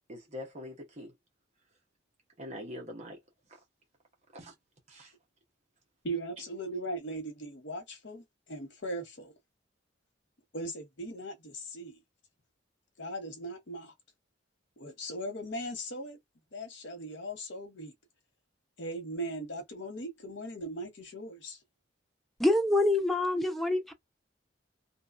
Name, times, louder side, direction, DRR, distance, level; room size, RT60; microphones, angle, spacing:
voice 1, 0.1-1.1 2.4-3.2 4.3-4.5 4.9-5.1, left 1 dB, 35° right, 0.9 m, -43 dB
voice 2, 6.0-9.3 10.5-12.0 13.0-13.9 14.8-16.2 16.5-17.9 18.8-21.6, right 1 dB, 65° left, 1.0 m, -39 dB
voice 3, 22.4-23.9, left 1 dB, ahead, 0.4 m, -26 dB
2.8 x 2.2 x 2.4 m
head